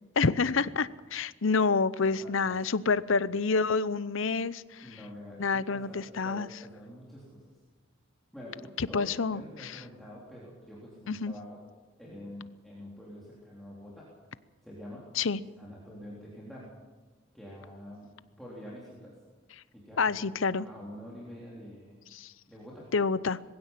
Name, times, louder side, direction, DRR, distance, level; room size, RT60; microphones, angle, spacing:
voice 1, 0.2-5.0 5.4-6.5 8.8-9.8 11.1-11.3 15.2-15.4 19.5-19.6 20.0-20.7 22.1-22.3 22.9-23.4, left 4 dB, 75° left, 17 dB, 0.7 m, -28 dB
voice 2, 4.8-7.6 8.3-11.6 12.0-14.1 14.6-15.0 15.6-16.7 17.3-18.1 18.4-19.1 19.7-22.0 22.5-22.8, left 1 dB, ahead, -6 dB, 3.9 m, -46 dB
21.5 x 16.0 x 7.5 m, 1.3 s
head